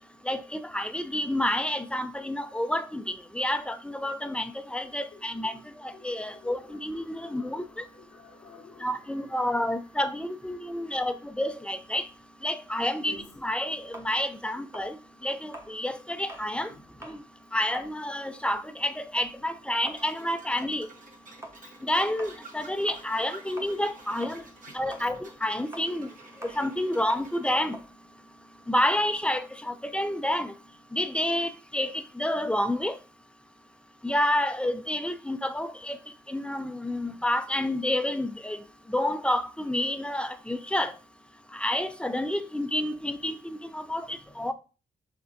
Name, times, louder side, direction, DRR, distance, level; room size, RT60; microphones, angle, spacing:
voice 1, 0.3-7.6 8.8-12.0 12.4-13.2 13.4-15.0 15.2-16.7 17.1-17.2 17.5-20.9 21.8-24.4 24.7-26.1 26.4-27.8 28.7-30.5 30.9-33.0 34.0-36.0 36.3-38.6 38.9-40.9 41.5-44.5, left 1 dB, 5° left, 0.5 m, -29 dB
voice 2, 5.1-9.6 10.5-11.1 13.0-13.4 16.7-16.8 25.0-25.1 44.0-44.5, left 3 dB, 80° left, 0.9 m, -53 dB
sound 1, 13.9-16.5 16.9-17.2 17.6-24.0 24.2-29.0, right 1 dB, 15° right, 1.3 m, -46 dB
sound 2, 20.0-27.7, right 3 dB, 50° right, 1.4 m, -50 dB
5.5 x 3.3 x 2.7 m
supercardioid pair, 55°, 18 cm